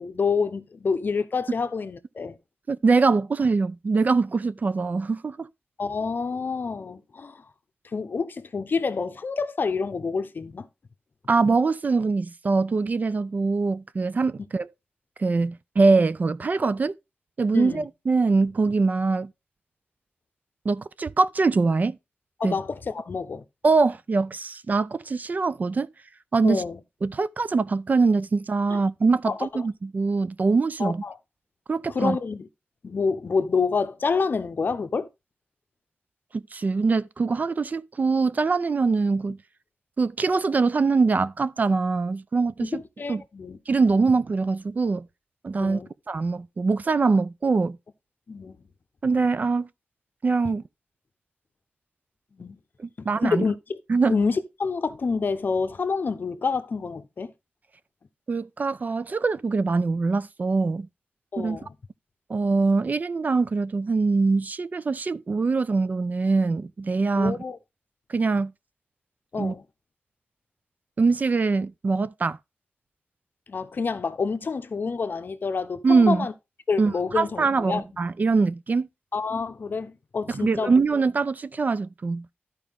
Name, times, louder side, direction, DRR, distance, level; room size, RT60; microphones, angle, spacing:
voice 1, 0.0-2.4 5.8-7.4 7.9-10.7 17.5-17.9 22.4-23.4 26.4-26.8 28.7-28.8 29.2-29.4 30.8-31.2 31.9-32.5 32.8-35.1 42.6-43.6 45.6-45.9 48.3-48.6 52.4-52.6 53.0-53.8 54.1-57.3 61.3-61.7 67.2-67.6 69.3-69.6 73.5-76.3 76.7-77.8 79.1-80.8, left 5 dB, 55° left, 0.8 m, -28 dB
voice 2, 2.7-5.5 11.3-14.7 15.2-16.9 17.4-19.3 20.6-22.0 22.4-22.6 23.6-25.9 26.3-26.6 27.0-31.0 31.7-32.2 36.3-39.4 40.0-42.8 43.1-43.2 43.7-45.1 45.4-45.8 46.1-47.8 49.0-49.7 50.2-50.6 52.8-53.4 53.9-54.1 58.3-60.9 61.4-61.6 62.3-67.4 68.1-68.5 69.4-69.5 71.0-72.4 75.8-76.3 76.8-78.9 80.3-82.3, right 4 dB, 45° right, 0.4 m, -23 dB
13.0 x 4.8 x 3.5 m
wide cardioid pair, 140°, 4 cm